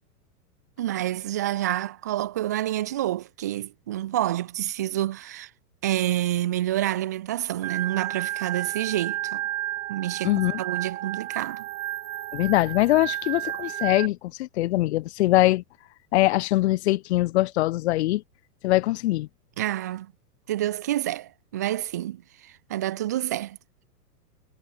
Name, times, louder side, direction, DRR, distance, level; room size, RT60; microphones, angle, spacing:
voice 1, 0.8-5.5 5.8-9.4 9.9-11.7 19.6-20.1 20.5-23.6, right 13 dB, 10° right, 0.5 m, -28 dB
Organ, 7.6-14.1, right 14 dB, 50° right, 2.6 m, -32 dB
voice 2, 10.2-10.6 12.3-15.6 16.1-18.2 18.6-19.3, left 17 dB, 40° left, 3.3 m, -22 dB
supercardioid pair, 170°, 48 cm